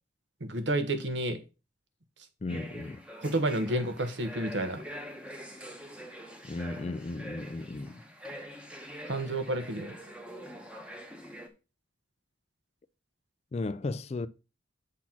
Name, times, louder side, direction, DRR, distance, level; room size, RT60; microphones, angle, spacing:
voice 1, 0.4-1.4 3.2-4.8 9.0-9.9, right 1 dB, 70° right, 1.2 m, -30 dB
voice 2, 2.4-3.0 6.4-8.0 13.5-14.3, left 3 dB, 35° left, 0.3 m, -35 dB
sound 1, 2.5-11.5, equal, 5° right, 1.0 m, -45 dB
7.4 x 4.1 x 5.9 m
head